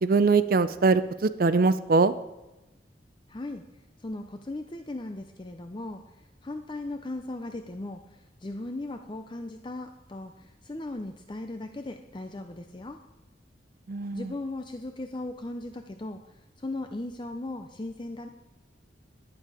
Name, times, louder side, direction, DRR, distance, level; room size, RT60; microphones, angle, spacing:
voice 1, 0.0-2.1 13.9-14.3, right 4 dB, 55° right, 13 dB, 0.5 m, -22 dB
voice 2, 3.3-3.7 4.0-6.0 6.4-8.0 8.4-13.0 14.1-16.2 16.6-18.3, left 2 dB, 25° left, 6 dB, 0.5 m, -37 dB
12.0 x 8.5 x 4.9 m, 0.99 s
head